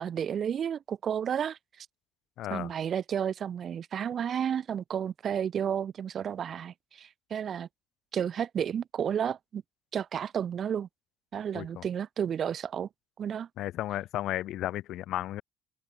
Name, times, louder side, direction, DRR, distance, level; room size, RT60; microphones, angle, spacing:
voice 1, 0.0-1.9 2.5-7.7 8.1-9.6 9.9-10.9 11.3-12.9 13.2-13.5, right 8 dB, 55° right, 1.5 m, -32 dB
voice 2, 2.4-2.7 11.5-11.8 13.6-15.4, left 14 dB, 70° left, 1.1 m, -34 dB
open air
supercardioid pair, 70°, 0 cm